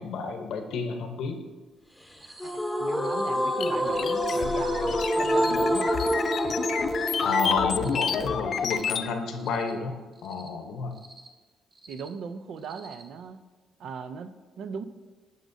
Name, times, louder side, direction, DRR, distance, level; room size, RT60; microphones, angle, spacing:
voice 1, 0.0-1.4 7.2-11.0, left 4 dB, 80° left, 6 dB, 0.8 m, -30 dB
Cricket, 2.1-2.5 2.9-3.3 3.7-4.1 4.5-4.9 5.3-5.7 6.1-6.5 6.9-7.3 7.7-8.1 8.5-8.9 9.3-9.7 10.1-10.5 10.9-11.3 11.7-12.1 12.6-13.0, right 3 dB, 45° right, 1.1 m, -50 dB
sound 1, 2.4-9.4, equal, ahead, 0.8 m, -28 dB
voice 2, 2.4-6.0 11.9-13.4 13.8-14.8, right 6 dB, 70° right, 11 dB, 0.5 m, -38 dB
sound 2, 3.6-9.1, left 6 dB, 55° left, 0.4 m, -30 dB
12.5 x 5.1 x 2.7 m, 1.3 s
cardioid pair, 90°, 0 cm